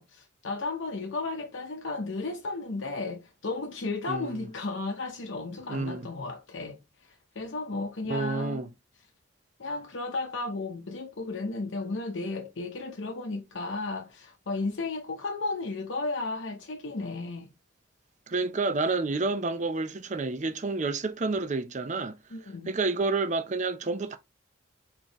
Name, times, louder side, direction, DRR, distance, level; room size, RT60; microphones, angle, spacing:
voice 1, 0.0-8.7 9.6-17.5 22.3-22.7, left 3 dB, 65° left, 0.7 m, -34 dB
voice 2, 4.1-4.4 5.7-6.1 8.1-8.7 18.3-22.1 22.7-24.2, right 3 dB, 35° right, 0.6 m, -29 dB
4.5 x 3.7 x 3.0 m
head